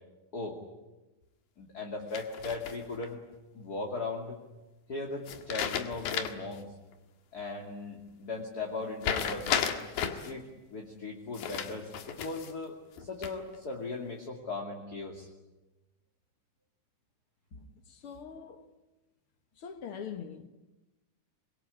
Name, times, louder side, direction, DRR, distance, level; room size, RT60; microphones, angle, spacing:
voice 1, 1.6-3.2 3.5-4.4 4.9-6.7 7.3-9.8 10.2-15.3 17.5-17.7, left 3 dB, 30° left, 2.6 m, -38 dB
sound 1, 2.1-3.1 5.3-6.5 6.9-7.0 9.0-10.3 11.3-12.5 13.0-13.6, left 8 dB, 80° left, 3.5 m, -33 dB
voice 2, 17.9-18.7 19.6-20.5, left 7 dB, 50° left, 1.8 m, -43 dB
26.0 x 22.5 x 9.9 m
omnidirectional pair, 4.0 m